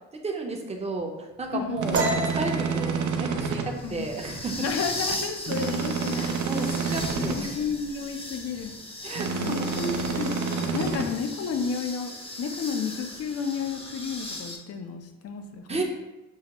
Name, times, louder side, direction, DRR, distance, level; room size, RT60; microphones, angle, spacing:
voice 1, 0.2-4.7 6.1-7.6 9.0-9.8 15.7-15.8, right 3 dB, 20° right, 1 dB, 0.7 m, -33 dB
sound 1, 1.4-14.6, left 1 dB, 20° left, 0.7 m, -38 dB
voice 2, 1.5-2.0 3.8-4.1 4.6-6.4 7.2-8.7 9.3-10.4 10.7-15.8, left 5 dB, 55° left, 6 dB, 0.6 m, -32 dB
sound 2, 1.8-3.7 5.5-7.4 9.1-11.0, right 5 dB, 75° right, 0.6 m, -28 dB
sound 3, 1.9-5.4 5.7-6.0 6.4-6.9 7.2-8.0, right 2 dB, 50° right, 1.1 m, -32 dB
6.3 x 2.1 x 2.9 m, 1.0 s
cardioid pair, 90°, 30 cm